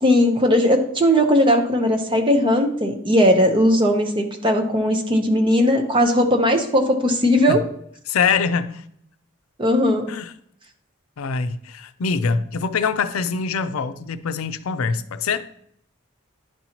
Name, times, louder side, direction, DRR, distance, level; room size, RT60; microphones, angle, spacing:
voice 1, 0.0-7.6 9.6-10.0, equal, 25° right, 0.8 m, -18 dB
voice 2, 8.1-8.8 10.1-10.3 11.2-15.5, left 5 dB, 85° left, 0.5 m, -24 dB
10.5 x 4.2 x 2.9 m
head